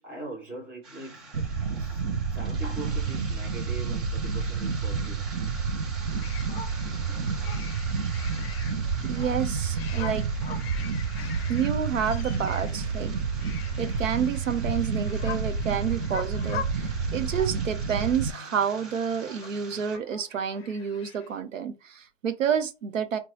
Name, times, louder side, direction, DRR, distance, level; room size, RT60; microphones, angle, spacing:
voice 1, 0.0-1.4 1.7-5.5 6.8-7.5, right 2 dB, 5° right, 0.6 m, -42 dB
sound 1, 0.8-20.0, right 3 dB, 30° right, 1.2 m, -45 dB
sound 2, 1.3-18.3, right 5 dB, 45° right, 0.5 m, -29 dB
sound 3, 6.0-21.4, left 7 dB, 50° left, 0.6 m, -44 dB
voice 2, 9.0-10.3 11.5-13.1 13.8-23.2, right 7 dB, 80° right, 0.8 m, -29 dB
3.9 x 2.3 x 2.9 m
hypercardioid pair, 145°, 38 cm